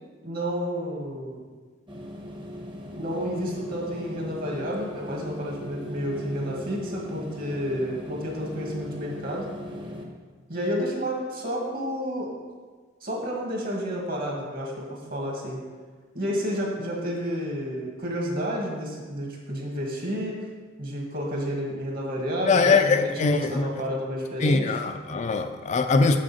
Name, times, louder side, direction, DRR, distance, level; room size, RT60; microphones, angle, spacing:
voice 1, 0.2-1.4 3.0-9.4 10.5-12.3 13.0-15.6 16.1-20.3 20.8-24.6, equal, 50° right, -1 dB, 1.7 m, -30 dB
sound 1, 1.9-10.0, equal, 25° right, 0.9 m, -39 dB
voice 2, 22.4-23.7 24.4-26.2, left 4 dB, 40° left, 7 dB, 0.4 m, -22 dB
6.9 x 6.2 x 4.2 m, 1.4 s
head